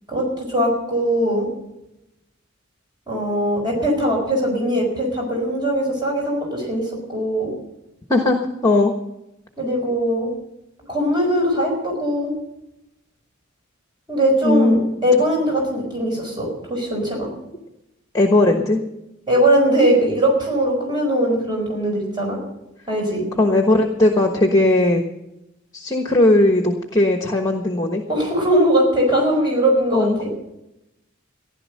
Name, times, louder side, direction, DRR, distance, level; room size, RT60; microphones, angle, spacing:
voice 1, 0.1-1.5 3.1-7.5 9.6-10.3 10.9-12.3 14.1-17.3 19.3-22.4 22.9-23.2 28.1-30.3, equal, 25° right, -1 dB, 4.6 m, -20 dB
voice 2, 8.6-8.9 14.4-14.9 18.1-18.8 23.4-25.0 25.7-28.0 29.9-30.2, left 2 dB, 15° left, 4 dB, 1.3 m, -17 dB
15.5 x 11.5 x 6.6 m, 0.89 s
head